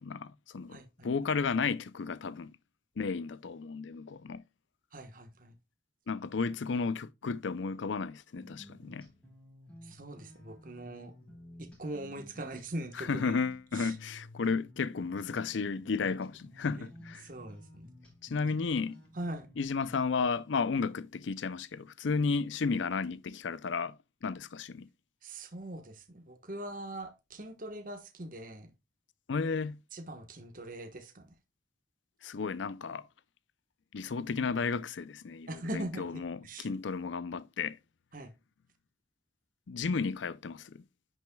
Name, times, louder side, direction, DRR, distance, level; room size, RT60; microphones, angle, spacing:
voice 1, 0.0-2.6 3.0-4.4 6.1-9.1 13.0-17.3 18.2-19.0 19.6-24.9 29.3-29.8 32.2-33.0 33.9-37.8 39.7-40.8, left 5 dB, 75° left, 0.5 m, -33 dB
voice 2, 0.7-1.1 4.9-5.5 9.8-11.1 11.6-13.4 13.7-14.0 14.4-14.5 16.7-16.9 17.2-17.9 19.1-19.5 25.2-28.7 29.9-31.3 35.5-36.7 38.1-38.3, right 1 dB, 45° right, 1.2 m, -42 dB
sound 1, 8.4-20.0, left 1 dB, 5° left, 3.9 m, -53 dB
10.0 x 6.2 x 2.3 m
head